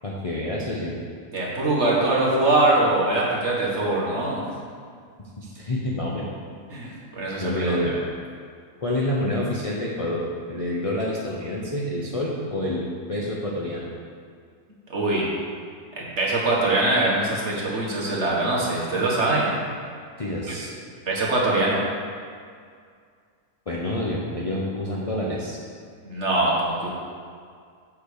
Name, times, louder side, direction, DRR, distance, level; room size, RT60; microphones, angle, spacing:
voice 1, 0.0-0.9 5.2-6.3 7.4-7.9 8.8-10.2 10.5-13.9 20.2-20.7 23.7-25.6, left 1 dB, 30° left, -4 dB, 0.7 m, -28 dB
voice 2, 1.3-4.4 6.7-8.0 14.9-15.3 16.0-19.5 20.5-20.6 21.1-21.8 26.0-26.9, right 2 dB, 45° right, -5 dB, 1.8 m, -23 dB
8.0 x 4.9 x 6.6 m, 2.1 s
omnidirectional pair, 1.7 m